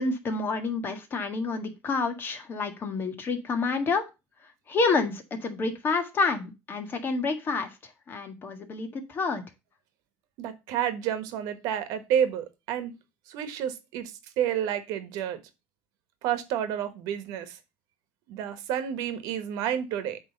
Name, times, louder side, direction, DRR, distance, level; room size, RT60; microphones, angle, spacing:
voice 1, 0.0-4.1 4.7-7.8 8.1-9.4, left 4 dB, 35° left, 1.6 m, -28 dB
voice 2, 10.4-12.9 13.3-15.4 16.2-17.6 18.3-20.2, right 9 dB, 70° right, 1.4 m, -30 dB
8.3 x 3.4 x 6.5 m
cardioid pair, 120°, 7 cm